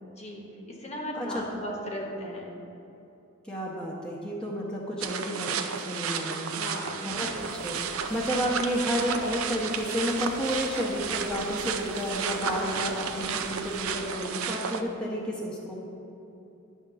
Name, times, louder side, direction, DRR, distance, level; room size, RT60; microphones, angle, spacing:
voice 1, 0.1-2.5 4.9-5.2 6.5-7.0 12.4-12.9, equal, 30° left, -1 dB, 1.1 m, -37 dB
voice 2, 3.4-5.5 5.8-6.5 7.0-7.8 8.1-15.7, equal, 5° left, -5 dB, 0.9 m, -31 dB
sound 1, 5.0-14.8, right 6 dB, 80° right, 0.5 m, -33 dB
sound 2, 7.3-14.1, left 1 dB, 55° left, 1.1 m, -47 dB
10.0 x 3.6 x 6.7 m, 2.9 s
head